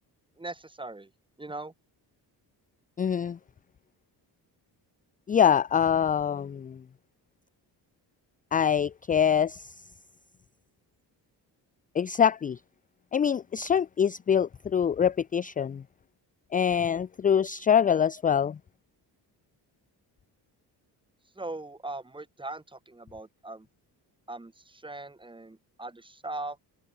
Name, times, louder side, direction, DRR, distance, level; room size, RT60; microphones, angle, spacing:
voice 1, 0.4-1.1 1.4-1.7 21.4-23.7 24.3-26.6, right 2 dB, 10° right, 3.6 m, -40 dB
voice 2, 3.0-3.4 5.3-6.8 8.5-9.7 11.9-12.6 13.1-15.8 16.5-18.6, left 8 dB, 20° left, 0.3 m, -24 dB
cardioid pair, 140°, 40 cm